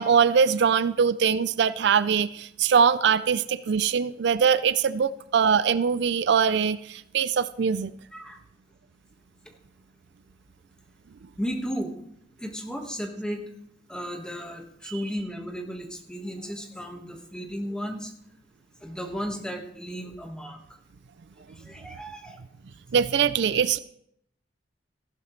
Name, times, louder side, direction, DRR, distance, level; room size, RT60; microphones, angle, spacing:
voice 1, 0.0-7.9 22.9-23.8, right 6 dB, 65° right, 15 dB, 0.4 m, -22 dB
voice 2, 11.4-11.9 12.4-13.4 13.9-18.1 18.8-20.6 21.6-22.4, equal, 5° left, 2 dB, 1.5 m, -34 dB
15.0 x 12.0 x 3.2 m, 0.70 s
head